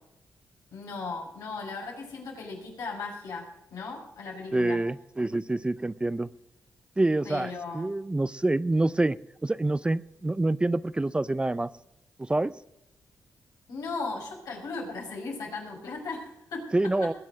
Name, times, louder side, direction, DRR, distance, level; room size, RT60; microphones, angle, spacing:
voice 1, 0.7-4.8 7.2-7.9 13.7-16.7 17.0-17.1, left 3 dB, 85° left, -1 dB, 5.8 m, -37 dB
voice 2, 4.5-6.3 7.0-11.7 12.2-12.5 16.7-17.1, right 2 dB, 15° right, 17 dB, 0.4 m, -27 dB
21.0 x 7.9 x 6.2 m, 0.86 s
cardioid pair, 80°, 6 cm